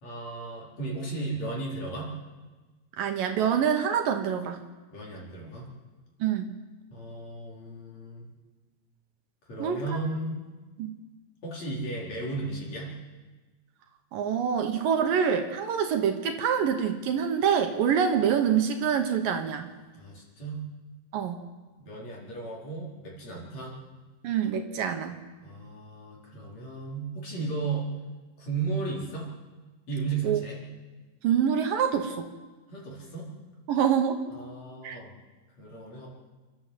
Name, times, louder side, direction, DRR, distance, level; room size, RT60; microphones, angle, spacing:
voice 1, 0.0-2.1 4.9-5.7 6.9-8.3 9.4-10.4 11.4-13.0 19.9-20.6 21.8-23.8 25.4-27.9 28.4-29.3 29.9-30.7 32.7-33.3 34.3-35.1 35.6-36.1, right 3 dB, 45° left, -4 dB, 5.2 m, -35 dB
voice 2, 3.0-4.6 6.2-6.5 9.6-10.0 10.8-10.9 14.1-19.7 21.1-21.4 24.2-25.2 30.2-30.4 31.2-32.3 33.7-34.2 34.8-35.0, right 8 dB, 70° right, 5 dB, 2.7 m, -26 dB
29.0 x 12.0 x 7.8 m, 1.3 s
omnidirectional pair, 4.3 m